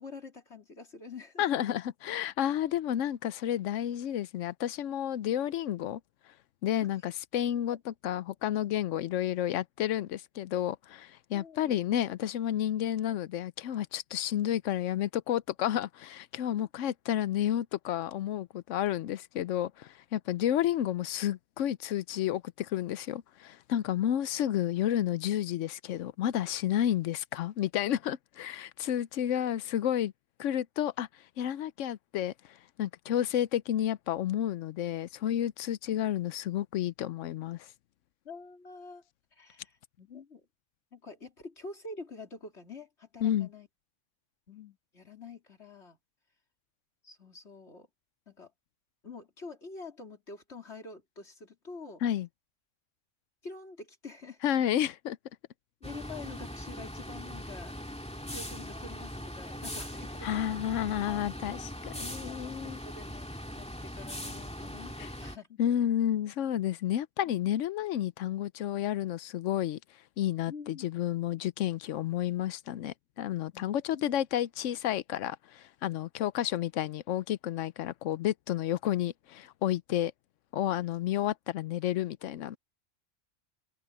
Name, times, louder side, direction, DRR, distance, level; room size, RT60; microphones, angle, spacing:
voice 1, 0.0-1.4 6.8-6.9 7.7-7.8 11.3-11.8 38.2-39.0 39.3-40.4 40.9-43.7 44.5-46.0 47.0-47.9 48.3-48.5 49.0-52.0 53.4-54.4 55.8-57.7 58.3-60.6 61.1-61.3 62.2-63.3 63.6-65.6 67.3-67.4 70.5-70.9 73.5-73.6 73.9-74.0, left 3 dB, 65° left, 4.0 m, -47 dB
voice 2, 1.4-6.0 6.6-30.1 30.4-31.1 31.4-37.7 43.2-43.5 52.0-52.3 54.4-55.2 60.2-62.8 65.0-65.1 65.6-69.8 70.2-80.1 80.5-82.6, left 11 dB, 90° left, 1.0 m, -31 dB
sound 1, 55.8-65.4, equal, 5° left, 2.1 m, -40 dB
omnidirectional pair, 1.2 m